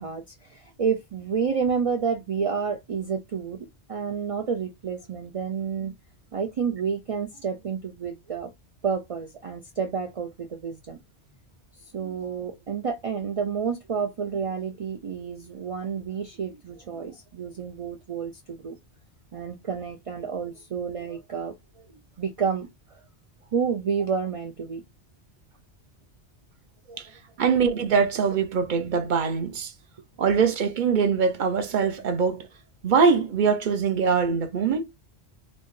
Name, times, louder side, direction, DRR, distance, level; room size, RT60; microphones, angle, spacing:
voice 1, 0.0-5.9 6.3-8.5 8.8-11.0 11.9-18.8 19.3-21.5 22.2-23.0 23.5-24.8 26.9-27.0, right 6 dB, 70° right, 0.3 m, -30 dB
voice 2, 27.4-29.7 30.2-32.5 32.8-34.8, right 6 dB, 50° right, 0.7 m, -23 dB
4.3 x 2.3 x 3.1 m
omnidirectional pair, 1.2 m